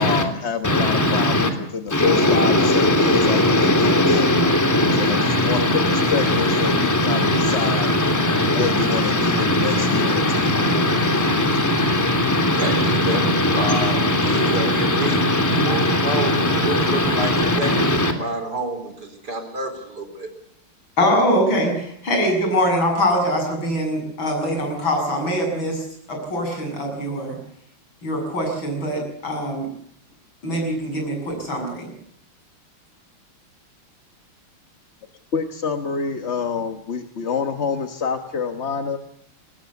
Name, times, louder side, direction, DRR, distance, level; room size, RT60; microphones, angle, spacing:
voice 1, 0.0-4.3 4.9-7.9 8.5-10.2 35.3-39.0, left 5 dB, 40° left, 7 dB, 1.2 m, -27 dB
voice 2, 0.6-1.5 1.9-18.1, left 1 dB, 10° left, 4 dB, 3.0 m, -19 dB
voice 3, 12.6-13.2 13.5-15.3 15.5-20.3, right 1 dB, 50° right, 6 dB, 4.8 m, -29 dB
voice 4, 21.0-27.4 28.0-29.7 30.4-31.9, equal, 65° left, 2 dB, 8.3 m, -23 dB
23.5 x 19.5 x 8.2 m, 0.69 s
omnidirectional pair, 2.3 m